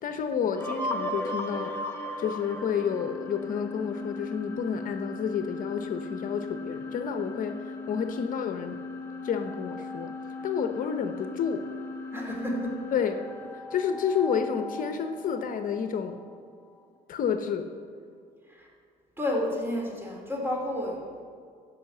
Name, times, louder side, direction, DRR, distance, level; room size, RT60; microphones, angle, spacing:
voice 1, 0.0-1.8 2.2-7.6 7.9-8.8 9.2-11.7 12.9-13.2 13.7-16.2 17.1-17.7, left 7 dB, 55° left, 7 dB, 0.9 m, -30 dB
sound 1, 0.6-16.4, left 2 dB, 15° left, 1.3 m, -37 dB
voice 2, 12.1-12.8 18.6-18.7 19.2-21.2, left 1 dB, 15° right, 0 dB, 2.9 m, -31 dB
16.0 x 5.7 x 6.7 m, 2.1 s
cardioid pair, 110°, 17 cm